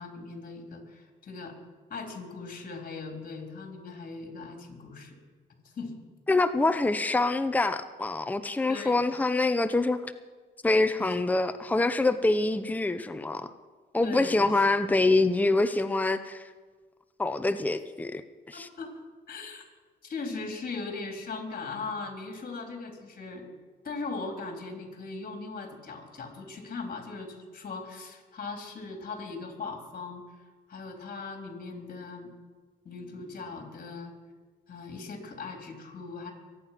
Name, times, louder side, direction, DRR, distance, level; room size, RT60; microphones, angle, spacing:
voice 1, 0.0-1.5 1.9-5.2 5.6-5.9 8.7-9.1 11.0-11.2 14.0-14.6 18.5-18.9 19.3-19.6 20.0-23.5 23.8-30.2 30.7-32.3 32.8-34.1 34.7-36.3, left 4 dB, 45° left, 3 dB, 3.9 m, -39 dB
voice 2, 6.3-10.1 10.6-13.5 13.9-16.5 17.2-18.2 18.5-18.7, left 2 dB, 10° left, 10 dB, 0.7 m, -25 dB
23.0 x 9.1 x 5.9 m, 1.4 s
cardioid pair, 90°, 20 cm